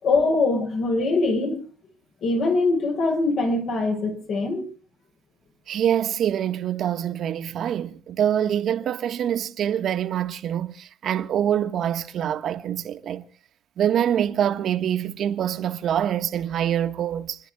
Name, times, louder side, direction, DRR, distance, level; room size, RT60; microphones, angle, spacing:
voice 1, 0.0-1.6 2.2-4.7, left 3 dB, 60° left, 5.1 m, -22 dB
voice 2, 5.7-13.2 13.8-17.4, right 10 dB, 60° right, 1.4 m, -25 dB
29.0 x 10.5 x 4.8 m
cardioid pair, 95°, 0 cm